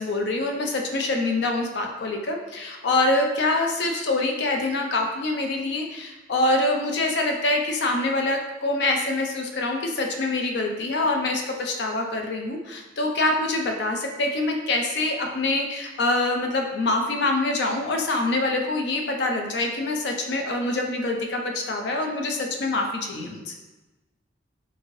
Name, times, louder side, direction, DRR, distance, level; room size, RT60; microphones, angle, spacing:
voice 1, 0.0-23.5, left 2 dB, 60° left, 3 dB, 0.4 m, -25 dB
3.0 x 2.6 x 2.5 m, 1.1 s
head